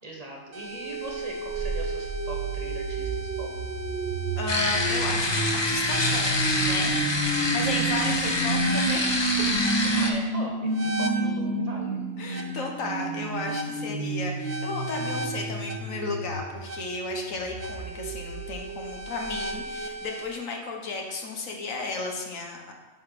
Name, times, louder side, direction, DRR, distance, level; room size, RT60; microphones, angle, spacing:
voice 1, 0.0-3.5 9.9-12.0, right 1 dB, 30° right, 0 dB, 1.4 m, -40 dB
sound 1, 0.5-20.3, right 2 dB, 60° right, 1.2 m, -30 dB
voice 2, 4.3-7.0 7.3-9.2 12.2-22.7, left 3 dB, 80° left, 1 dB, 1.5 m, -34 dB
sound 2, 4.5-10.1, left 2 dB, 25° left, 0.6 m, -27 dB
10.5 x 3.9 x 5.9 m, 1.2 s
omnidirectional pair, 1.4 m